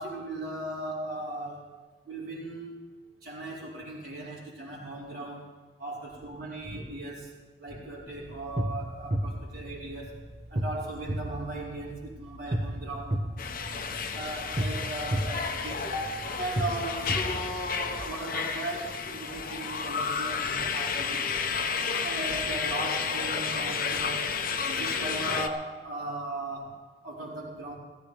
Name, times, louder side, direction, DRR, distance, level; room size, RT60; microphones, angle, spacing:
voice 1, 0.0-1.7 2.1-2.8 3.2-5.5 5.8-7.3 7.6-10.2 10.5-13.2 13.9-21.3 22.0-24.4 24.7-26.8 27.0-27.7, right 1 dB, 55° right, -9 dB, 4.5 m, -37 dB
sound 1, 8.1-18.0, right 1 dB, 40° right, 0.9 m, -34 dB
sound 2, 13.4-25.5, left 5 dB, 55° left, 0.8 m, -31 dB
17.0 x 15.0 x 3.4 m, 1.3 s
head